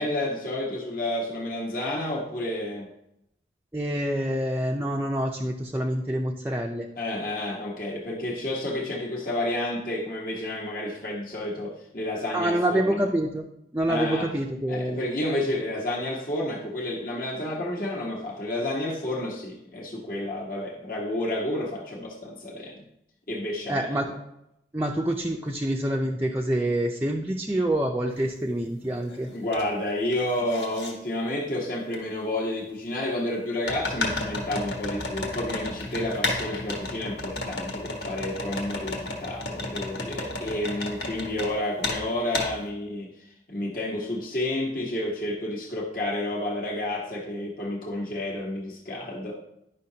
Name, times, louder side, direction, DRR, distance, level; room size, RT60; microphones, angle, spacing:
voice 1, 0.0-2.9 7.0-13.1 13.9-14.3 14.7-22.8 23.3-24.1 29.3-49.4, left 1 dB, 50° left, -3 dB, 1.2 m, -30 dB
voice 2, 3.7-6.9 12.3-13.5 13.7-15.0 23.7-24.1 24.7-29.3, right 1 dB, 10° right, 0 dB, 0.4 m, -26 dB
sound 1, 28.2-28.3 28.8-29.6 29.9-30.9 31.9-32.0 33.6-41.5 41.8-42.0 42.3-42.5, left 2 dB, 75° left, 1.5 m, -32 dB
10.5 x 5.7 x 2.8 m, 0.83 s
head